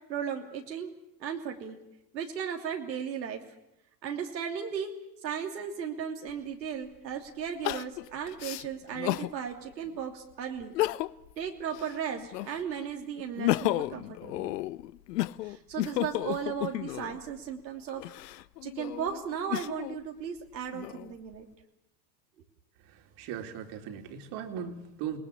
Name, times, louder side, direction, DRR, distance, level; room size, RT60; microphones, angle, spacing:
voice 1, 0.1-0.9 1.2-1.8 2.1-3.4 4.0-4.9 5.2-10.7 11.4-14.5 15.4-18.0 18.6-21.4, right 7 dB, 85° right, 2 dB, 3.1 m, -36 dB
Crying sobbing, 6.3-6.4 7.6-9.3 9.9-10.0 10.6-11.3 11.7-12.7 13.2-17.2 17.9-20.0 20.5-21.3, left 16 dB, 70° left, 1.0 m, -32 dB
voice 2, 22.8-25.2, right 8 dB, 55° right, 5 dB, 3.9 m, -38 dB
29.0 x 20.0 x 8.4 m, 0.87 s
hypercardioid pair, 90°, 50 cm